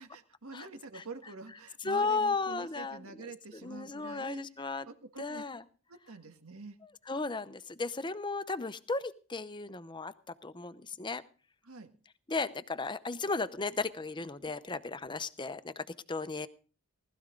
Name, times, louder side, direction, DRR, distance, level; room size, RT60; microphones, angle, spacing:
voice 1, 0.0-4.4 4.9-5.4 5.9-6.8 11.6-11.9, right 3 dB, 80° right, 7 dB, 1.8 m, -46 dB
voice 2, 1.8-3.0 3.6-4.9 5.2-5.6 7.1-10.1 10.4-11.2 12.3-16.5, left 3 dB, 20° left, 13 dB, 0.8 m, -35 dB
19.5 x 13.5 x 3.9 m, 0.38 s
head